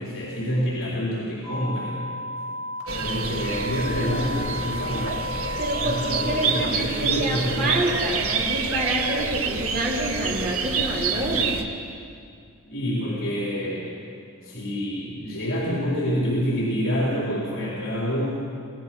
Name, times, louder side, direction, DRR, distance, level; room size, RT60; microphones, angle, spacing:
voice 1, 0.0-2.0 3.0-5.2 5.8-7.8 12.7-13.9 14.4-18.3, equal, 65° left, -5 dB, 4.2 m, -27 dB
sound 1, 1.4-7.8, left 1 dB, 30° left, 5.7 m, -34 dB
sound 2, 2.9-11.6, right 5 dB, 80° right, 1.6 m, -27 dB
voice 2, 5.6-11.5, right 1 dB, 35° right, -4 dB, 4.2 m, -28 dB
26.0 x 18.5 x 6.1 m, 2.3 s
head